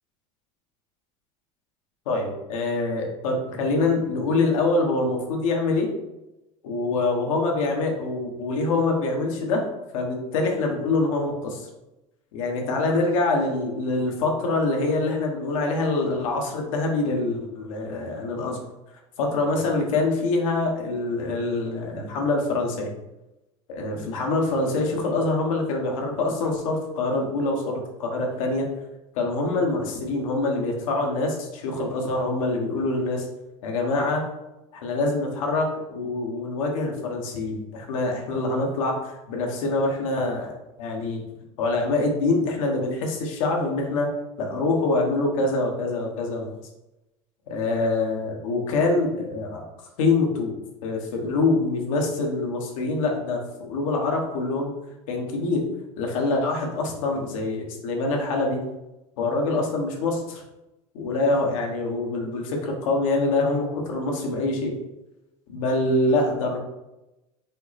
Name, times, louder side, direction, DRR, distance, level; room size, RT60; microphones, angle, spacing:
voice 1, 2.1-5.9 6.6-9.6 9.9-11.7 12.3-18.6 19.2-22.9 23.7-28.6 29.1-33.3 33.6-34.2 34.7-41.2 41.6-44.1 44.4-46.5 47.5-49.6 50.0-50.5 50.8-54.7 55.1-55.6 56.0-58.6 59.2-60.4 60.9-64.7 65.5-66.6, left 2 dB, 85° left, 1 dB, 1.1 m, -25 dB
5.5 x 2.0 x 4.1 m, 0.97 s
supercardioid pair, 110°, 17 cm